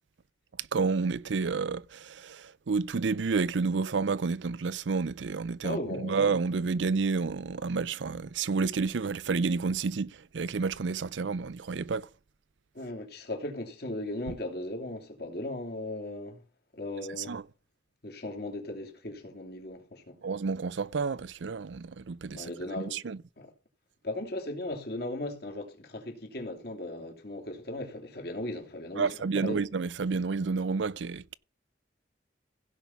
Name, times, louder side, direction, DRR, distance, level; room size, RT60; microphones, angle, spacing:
voice 1, 0.6-12.1 17.3-17.4 20.2-22.5 22.8-23.2 29.0-31.3, right 4 dB, 80° right, 0.5 m, -30 dB
voice 2, 5.6-6.2 12.7-16.4 16.7-17.4 18.0-20.2 22.3-23.0 23.4-23.5 24.0-29.6, left 1 dB, 55° left, 2.9 m, -37 dB
16.0 x 5.4 x 5.9 m
head